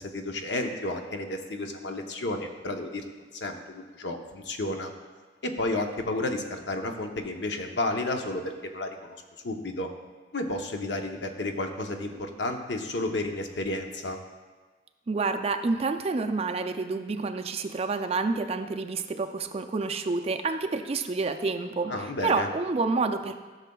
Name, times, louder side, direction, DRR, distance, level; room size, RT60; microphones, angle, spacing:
voice 1, 0.0-3.0 3.4-4.9 5.4-9.2 9.4-9.9 10.3-14.2 21.9-22.5, left 2 dB, 65° left, 4 dB, 0.8 m, -32 dB
voice 2, 15.1-21.9 22.2-23.3, right 3 dB, 35° right, 6 dB, 0.4 m, -28 dB
14.0 x 6.5 x 2.3 m, 1.4 s
head